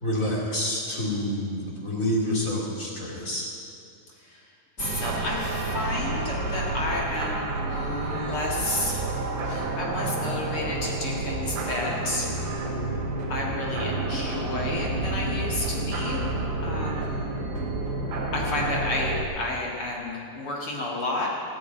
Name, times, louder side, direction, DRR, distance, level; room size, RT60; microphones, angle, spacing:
voice 1, 0.0-3.4, left 1 dB, 25° left, -3 dB, 2.2 m, -28 dB
voice 2, 4.8-9.1 9.4-12.3 13.3-16.3 16.6-17.3 18.3-21.3, left 2 dB, 45° left, -3 dB, 2.0 m, -31 dB
sound 1, 4.8-19.2, right 2 dB, 60° right, 3.1 m, -30 dB
17.0 x 7.8 x 9.1 m, 2.4 s
omnidirectional pair, 4.4 m